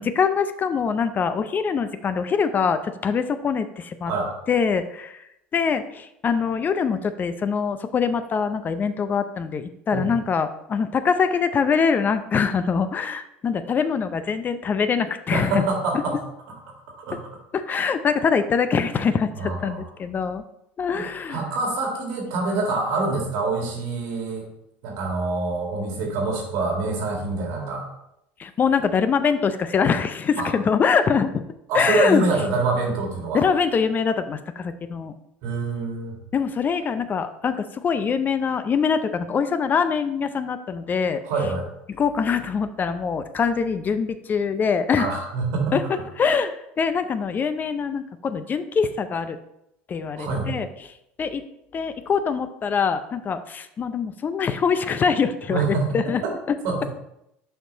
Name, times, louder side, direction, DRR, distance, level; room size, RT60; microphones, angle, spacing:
voice 1, 0.0-4.1 4.5-5.2 5.5-15.6 17.5-20.4 20.8-21.4 28.4-31.3 31.7-32.3 33.3-35.1 36.3-41.2 42.0-45.1 45.7-45.8 46.2-49.4 49.9-50.9 51.2-51.4 51.7-56.2 56.5-56.6, left 6 dB, 35° left, 11 dB, 0.5 m, -23 dB
voice 2, 15.3-16.2 17.0-17.2 19.4-19.8 21.0-21.1 21.3-24.4 24.8-27.9 30.4-30.5 31.7-33.4 35.4-36.1 41.2-41.7 45.0-45.8 50.2-50.5 55.5-56.0 56.2-56.3 56.6-56.8, right 3 dB, 70° right, 1 dB, 1.9 m, -25 dB
6.6 x 4.7 x 4.0 m, 0.82 s
hypercardioid pair, 80°, 5 cm